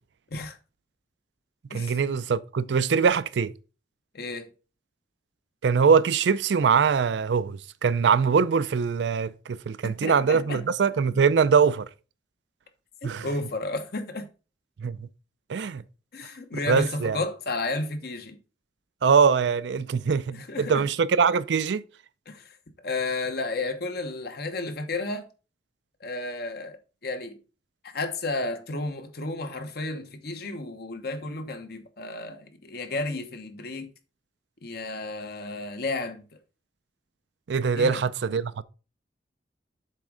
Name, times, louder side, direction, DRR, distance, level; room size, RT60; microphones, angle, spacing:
voice 1, 1.7-3.5 5.6-11.9 13.0-13.3 14.8-15.0 15.5-15.8 16.7-17.2 19.0-21.8 37.5-38.6, right 6 dB, 75° right, 0.4 m, -23 dB
voice 2, 4.1-4.5 9.8-10.6 13.0-14.2 16.1-18.4 20.3-20.8 22.3-22.6 22.8-25.2 26.0-26.8 27.0-27.4 27.8-33.9 34.6-36.2 37.8-38.0, left 2 dB, 60° left, 1.0 m, -32 dB
7.6 x 3.6 x 4.8 m
head